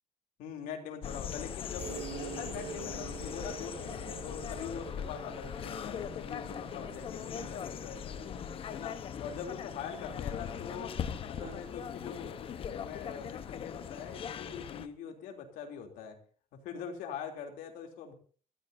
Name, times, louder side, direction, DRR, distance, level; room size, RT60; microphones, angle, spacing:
voice 1, 0.4-8.3 8.7-11.0 11.3-16.2 16.6-18.1, left 7 dB, 85° left, 3 dB, 3.1 m, -43 dB
sound 1, 1.0-14.9, left 8 dB, 40° left, 1.0 m, -40 dB
sound 2, 1.8-9.3, right 7 dB, 45° right, 7.2 m, -47 dB
Hammer, 5.7-13.5, right 7 dB, 65° right, 4.3 m, -57 dB
24.5 x 14.5 x 2.7 m, 0.42 s
cardioid pair, 155°, 14 cm